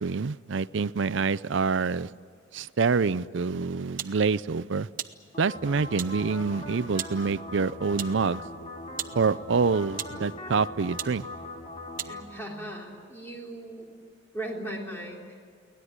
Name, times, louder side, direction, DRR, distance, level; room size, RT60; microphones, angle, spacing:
voice 1, 0.0-2.1 2.5-4.9 5.4-8.4 9.1-11.2, right 5 dB, 75° right, 17 dB, 0.5 m, -26 dB
sound 1, 4.0-4.2 5.0-5.2 6.0-6.2 7.0-7.2 8.0-8.2 9.0-9.2 9.9-10.2 11.0-11.2 12.0-12.2, right 10 dB, 45° right, 0.9 m, -35 dB
sound 2, 5.3-12.2, left 1 dB, 30° left, 3.5 m, -41 dB
voice 2, 12.0-13.9 14.3-15.3, right 1 dB, 10° left, -1 dB, 3.6 m, -38 dB
23.5 x 18.5 x 9.6 m, 2.1 s
head